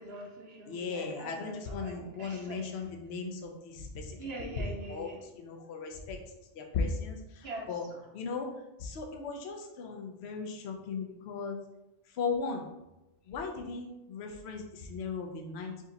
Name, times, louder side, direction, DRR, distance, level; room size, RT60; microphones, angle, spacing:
voice 1, 0.0-2.7 4.2-5.2 7.4-7.7, right 2 dB, 60° right, -1 dB, 1.2 m, -43 dB
voice 2, 0.7-4.2 4.6-6.2 6.6-7.8 8.1-8.5 8.8-11.6 12.1-12.7 13.3-15.8, left 4 dB, 65° left, 3 dB, 0.9 m, -37 dB
4.9 x 2.7 x 4.0 m, 0.95 s
omnidirectional pair, 1.2 m